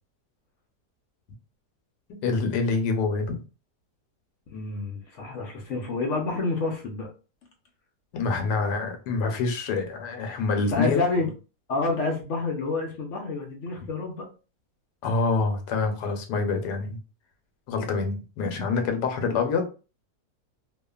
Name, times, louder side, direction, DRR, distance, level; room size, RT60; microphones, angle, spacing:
voice 1, 2.1-3.4 8.1-11.0 15.0-17.0 17.7-19.7, left 4 dB, 85° left, 5 dB, 1.3 m, -26 dB
voice 2, 4.5-7.1 10.7-11.3 11.7-14.3, left 3 dB, 60° left, 2 dB, 0.8 m, -28 dB
2.8 x 2.4 x 2.3 m, 0.33 s
omnidirectional pair, 1.7 m